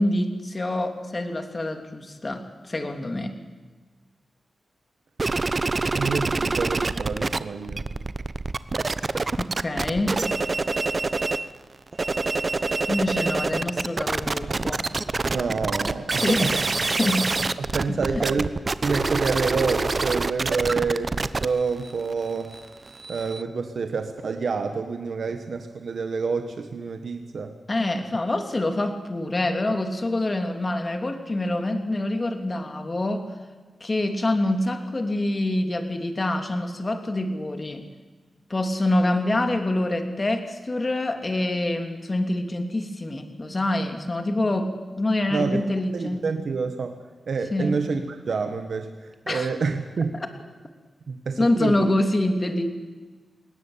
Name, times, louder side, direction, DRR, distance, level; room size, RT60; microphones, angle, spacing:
voice 1, 0.0-3.3 9.4-10.2 12.8-14.9 16.2-16.5 16.8-17.3 17.9-18.3 27.7-33.3 33.8-37.9 38.5-46.2 47.5-47.8 49.3-49.5 50.1-50.3 51.4-52.7, left 1 dB, 35° left, 6 dB, 2.9 m, -26 dB
sound 1, 5.2-7.4 7.6-11.5 11.9-23.4, right 3 dB, 40° right, 0.9 m, -26 dB
voice 2, 5.9-7.8 15.3-16.5 17.6-18.5 18.8-22.6 23.1-27.5 45.3-45.6 45.9-46.9 47.3-48.0 48.3-50.1 51.1-51.8, right 4 dB, 75° right, 6 dB, 1.6 m, -27 dB
21.0 x 18.0 x 8.9 m, 1.4 s
cardioid pair, 70°, 0 cm